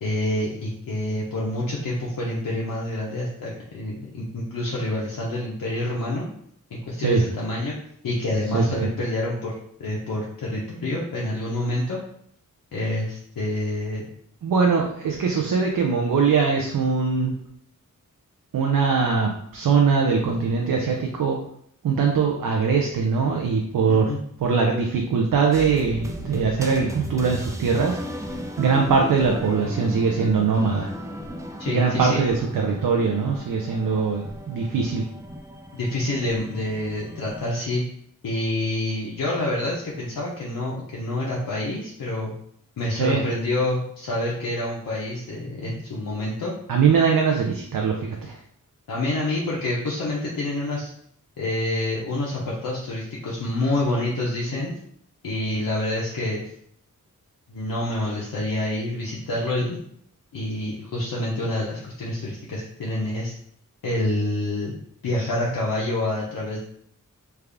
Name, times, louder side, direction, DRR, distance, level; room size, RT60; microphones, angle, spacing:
voice 1, 0.0-6.3 6.7-7.8 8.0-12.0 12.7-14.1 23.9-24.2 31.6-32.2 35.7-37.8 38.2-42.3 42.8-46.5 48.9-50.9 51.4-54.7 55.2-56.4 57.5-59.8 60.3-63.3 63.8-64.8 65.0-66.6, left 1 dB, 85° left, -5 dB, 0.7 m, -27 dB
voice 2, 8.5-8.9 14.4-17.3 18.5-21.4 21.8-24.1 24.4-28.0 28.6-30.9 31.7-35.0 43.0-43.2 46.7-48.4, right 5 dB, 90° right, 1 dB, 0.5 m, -22 dB
sound 1, 25.5-37.5, equal, 10° right, 0.5 m, -36 dB
3.4 x 2.4 x 3.4 m, 0.68 s
cardioid pair, 55°, 33 cm